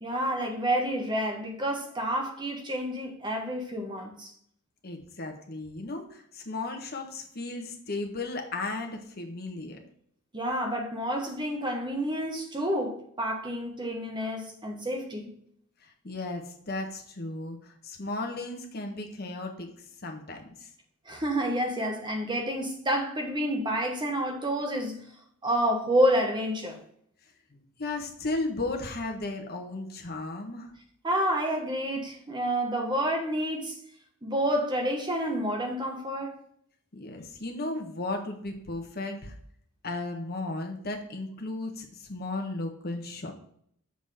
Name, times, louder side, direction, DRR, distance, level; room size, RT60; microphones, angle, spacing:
voice 1, 0.0-4.3 10.3-15.3 21.1-25.0 25.4-26.8 31.0-33.7 34.2-36.4, equal, 20° right, 1.1 m, -29 dB
voice 2, 4.8-9.8 15.8-19.7 20.0-20.7 27.8-30.7 36.9-39.3 39.8-43.3, left 2 dB, 45° left, 1.3 m, -35 dB
7.2 x 4.0 x 4.9 m
head